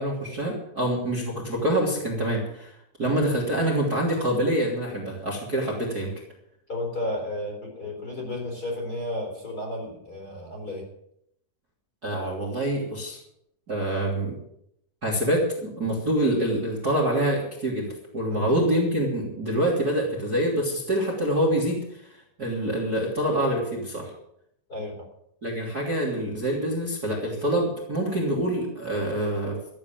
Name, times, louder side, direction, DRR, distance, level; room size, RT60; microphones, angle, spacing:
voice 1, 0.0-2.7 3.0-6.1 12.0-13.2 13.7-14.4 15.0-22.1 22.4-24.1 25.4-29.6, right 1 dB, 25° right, -3 dB, 2.8 m, -26 dB
voice 2, 6.7-10.9 18.3-18.5 24.7-25.1, left 1 dB, 20° left, 1 dB, 3.8 m, -33 dB
14.0 x 8.5 x 9.2 m, 0.76 s
omnidirectional pair, 5.2 m